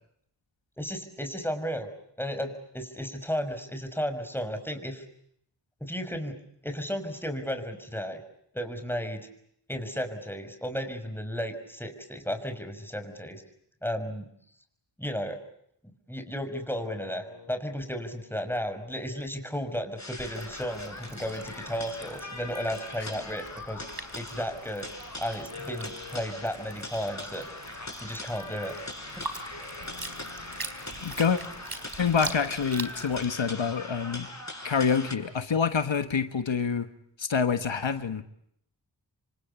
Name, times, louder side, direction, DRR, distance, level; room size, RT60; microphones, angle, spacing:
voice 1, 0.8-1.9 2.2-5.0 5.8-6.4 6.6-8.2 8.5-9.3 9.7-13.4 13.8-14.3 15.0-15.4 16.1-23.9 24.1-24.9 25.2-27.5 28.0-28.8 29.2-29.3, equal, 5° left, 7 dB, 5.7 m, -34 dB
sound 1, 16.7-20.3 21.1-24.8 25.4-33.4, left 5 dB, 60° left, 6.1 m, -52 dB
sound 2, 20.0-35.1, left 2 dB, 40° left, 6.9 m, -41 dB
sound 3, 20.2-33.3, right 2 dB, 55° right, 4.2 m, -43 dB
voice 2, 31.0-31.4 32.0-34.3 34.6-36.9 37.2-38.2, left 6 dB, 90° left, 9 dB, 1.5 m, -26 dB
28.5 x 25.0 x 8.3 m, 0.72 s
wide cardioid pair, 45°, 44 cm